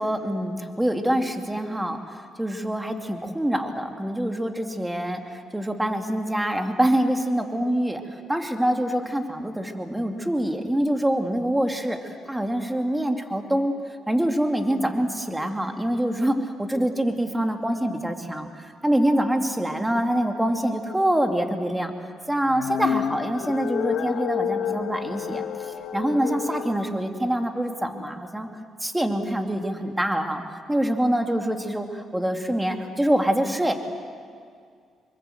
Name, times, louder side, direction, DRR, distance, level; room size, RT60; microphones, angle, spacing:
voice 1, 0.0-13.7 14.1-21.9 22.3-28.5 28.8-30.4 30.7-33.7, right 1 dB, 10° right, 4 dB, 2.5 m, -25 dB
sound 1, 22.4-26.8, left 8 dB, 75° left, 1.9 m, -29 dB
27.0 x 23.5 x 7.9 m, 2.2 s
cardioid pair, 90°, 0 cm